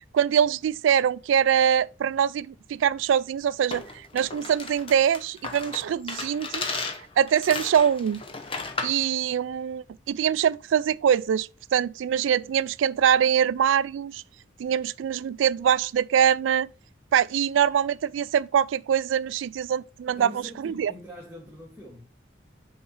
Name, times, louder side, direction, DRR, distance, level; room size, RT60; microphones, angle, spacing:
voice 1, 0.0-3.8 4.1-6.6 7.2-8.2 8.8-14.2 14.6-16.7 17.1-20.9, right 8 dB, 80° right, 0.3 m, -23 dB
sound 1, 3.7-9.0, left 3 dB, 30° left, 0.9 m, -35 dB
voice 2, 20.1-22.1, equal, 10° right, 1.6 m, -44 dB
6.4 x 4.4 x 4.4 m
head